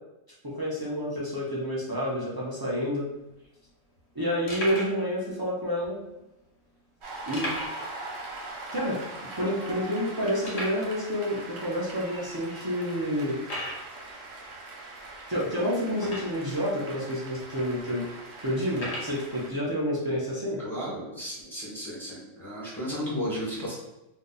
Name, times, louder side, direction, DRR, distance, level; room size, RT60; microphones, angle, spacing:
voice 1, 0.4-3.0 4.1-6.0 7.2-7.5 8.7-9.0 9.4-13.4 15.3-18.1 18.4-20.6, equal, 30° right, -7 dB, 0.4 m, -29 dB
sound 1, 3.0-3.1 3.3-3.4 4.0-4.1 4.5-5.0 5.8-5.9 7.3-7.9 8.2-8.3 8.7-8.8 9.4-9.5 10.4-10.9 11.7-11.8 12.4-12.5 13.4-13.9 16.0-16.5 17.3-17.4 18.7-19.2, equal, 35° left, 0.9 m, -35 dB
Cheering / Applause, 7.0-19.5, right 2 dB, 75° right, 1.1 m, -41 dB
voice 2, 20.5-23.7, equal, ahead, -8 dB, 1.2 m, -34 dB
2.5 x 2.2 x 4.0 m, 0.95 s
omnidirectional pair, 1.3 m